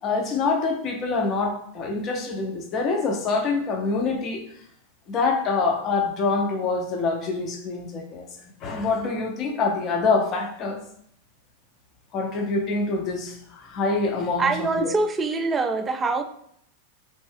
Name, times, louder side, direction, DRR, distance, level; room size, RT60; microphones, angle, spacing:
voice 1, 0.0-4.4 5.1-10.8 12.1-14.5 14.8-14.9, left 4 dB, 35° left, 2 dB, 0.6 m, -25 dB
voice 2, 14.4-16.2, right 3 dB, 20° right, 7 dB, 0.3 m, -24 dB
3.2 x 2.6 x 3.1 m, 0.68 s
figure-of-eight pair, 90°, 0 cm